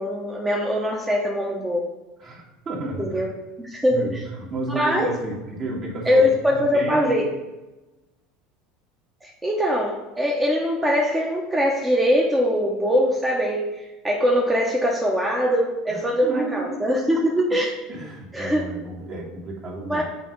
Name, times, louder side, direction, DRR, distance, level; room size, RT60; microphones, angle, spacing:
voice 1, 0.0-1.9 3.0-3.3 3.6-4.2 4.7-5.1 6.1-7.3 9.2-17.7 18.3-18.6 19.8-20.0, equal, 15° right, -2 dB, 1.0 m, -22 dB
voice 2, 2.2-3.3 3.9-7.3 15.9-17.6 17.9-20.0, right 2 dB, 40° right, -3 dB, 2.1 m, -32 dB
7.3 x 2.9 x 5.2 m, 1.1 s
hypercardioid pair, 85°, 0 cm